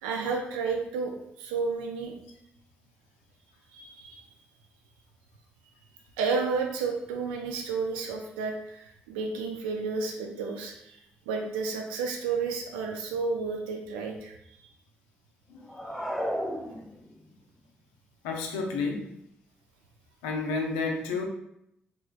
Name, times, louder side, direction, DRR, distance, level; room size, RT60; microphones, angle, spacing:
voice 1, 0.0-2.1 3.7-4.2 6.2-11.0 11.3-14.3, right 4 dB, 85° right, 3 dB, 0.3 m, -31 dB
sound 1, 15.6-17.3, equal, ahead, 0.6 m, -33 dB
voice 2, 18.2-19.1 20.2-21.2, left 4 dB, 85° left, 2 dB, 0.4 m, -30 dB
3.0 x 2.3 x 2.3 m, 0.78 s
hypercardioid pair, 45°, 5 cm